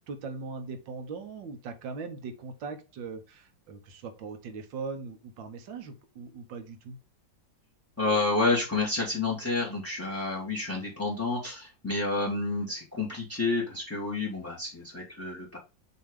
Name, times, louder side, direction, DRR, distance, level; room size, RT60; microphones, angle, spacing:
voice 1, 0.0-7.0, right 4 dB, 80° right, 7 dB, 1.8 m, -40 dB
voice 2, 8.0-15.6, left 3 dB, 10° left, -3 dB, 1.3 m, -29 dB
6.9 x 3.0 x 5.0 m, 0.30 s
omnidirectional pair, 2.1 m